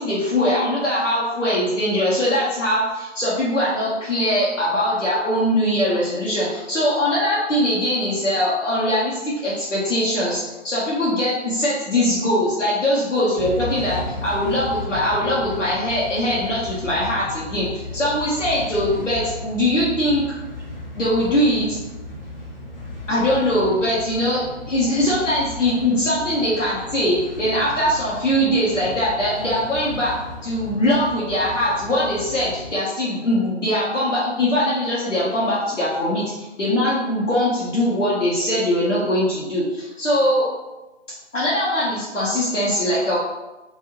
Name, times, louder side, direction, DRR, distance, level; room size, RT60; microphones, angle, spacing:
voice 1, 0.0-20.2 21.0-21.8 23.1-24.4 24.7-30.1 30.4-40.5 41.3-43.2, left 1 dB, 85° left, -8 dB, 1.0 m, -21 dB
sound 1, 13.4-32.8, left 2 dB, 50° left, 1.0 m, -35 dB
2.6 x 2.5 x 2.9 m, 1.0 s
figure-of-eight pair, 150°, 36 cm